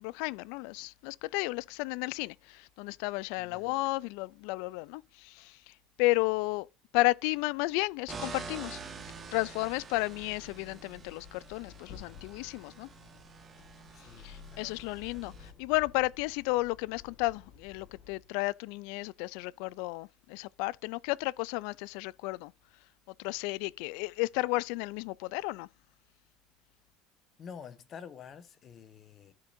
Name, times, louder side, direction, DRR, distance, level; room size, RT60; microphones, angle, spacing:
voice 1, 0.0-5.7 6.0-6.7 6.9-8.8 9.3-12.9 14.2-22.5 23.2-25.7, left 22 dB, 75° left, 0.3 m, -33 dB
voice 2, 3.4-3.7 13.9-14.6 15.0-15.1 27.4-29.3, left 7 dB, 40° left, 1.2 m, -48 dB
sound 1, 8.1-15.5, right 5 dB, 25° right, 1.6 m, -47 dB
sound 2, 8.9-18.4, left 7 dB, 55° left, 1.3 m, -54 dB
13.0 x 5.2 x 2.6 m
supercardioid pair, 120°, 0 cm